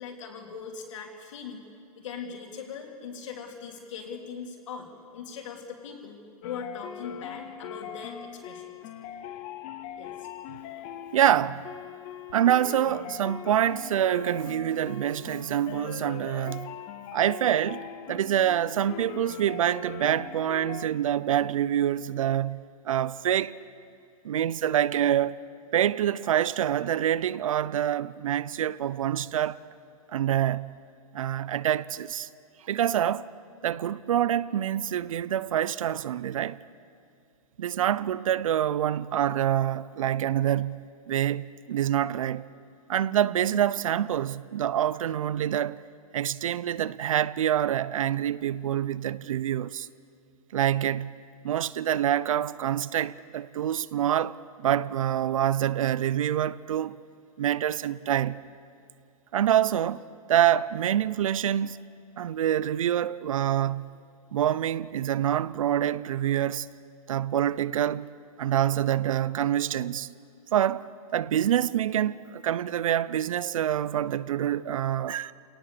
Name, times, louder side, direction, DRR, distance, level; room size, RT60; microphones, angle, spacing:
voice 1, 0.0-1.6 2.0-8.7 10.0-10.3, left 6 dB, 55° left, 3.6 m, -40 dB
sound 1, 6.4-20.9, left 9 dB, 25° left, 0.7 m, -41 dB
voice 2, 11.1-11.7 12.3-16.8 17.1-23.6 24.2-25.4 25.7-29.6 30.1-30.8 31.1-32.3 32.7-33.3 33.6-36.6 37.6-42.5 42.9-45.8 46.1-49.9 50.5-51.2 51.4-57.0 57.4-58.4 59.3-61.8 62.2-64.0 64.3-66.7 67.1-68.1 68.4-70.1 70.5-75.3, right 11 dB, 60° right, 0.7 m, -26 dB
27.0 x 18.5 x 6.9 m
hypercardioid pair, 160°, 19 cm